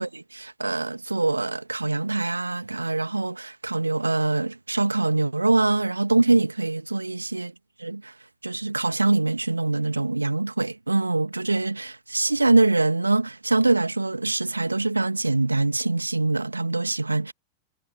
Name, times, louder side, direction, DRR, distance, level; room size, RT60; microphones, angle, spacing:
voice 1, 0.0-7.5 7.8-8.1 8.4-17.3, right 2 dB, 80° right, 2.2 m, -24 dB
figure-of-eight pair, 90°, 0 cm